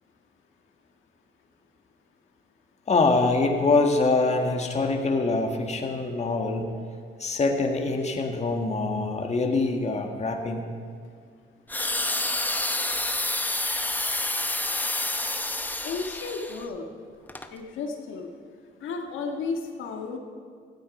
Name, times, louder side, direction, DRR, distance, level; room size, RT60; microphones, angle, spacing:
voice 1, 2.9-6.7 7.2-10.7, left 3 dB, 35° left, 3 dB, 1.9 m, -24 dB
sound 1, 11.7-16.7 17.3-17.5, left 1 dB, 10° left, 0.9 m, -28 dB
voice 2, 15.8-16.9 17.5-18.3 18.8-20.2, left 4 dB, 80° left, 2 dB, 1.6 m, -33 dB
16.5 x 14.0 x 5.4 m, 2.1 s
cardioid pair, 90°, 20 cm